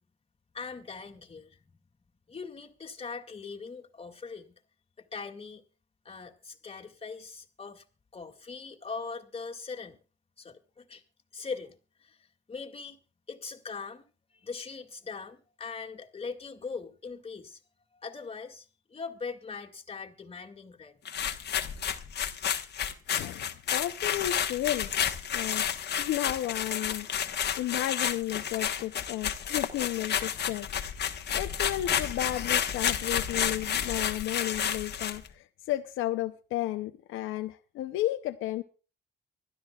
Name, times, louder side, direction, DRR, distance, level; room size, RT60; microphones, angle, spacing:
voice 1, 0.5-1.8 2.3-4.5 5.0-5.6 6.0-7.8 8.1-10.0 10.4-11.0 11.3-13.0 13.3-14.1 14.3-17.6 17.9-21.0, left 5 dB, 30° left, 2.2 m, -41 dB
sound 1, 21.1-35.3, left 8 dB, 55° left, 1.3 m, -31 dB
voice 2, 23.1-24.9 25.3-27.1 27.6-31.0 31.3-38.6, left 14 dB, 90° left, 0.7 m, -33 dB
24.5 x 12.5 x 2.4 m
cardioid pair, 90°, 20 cm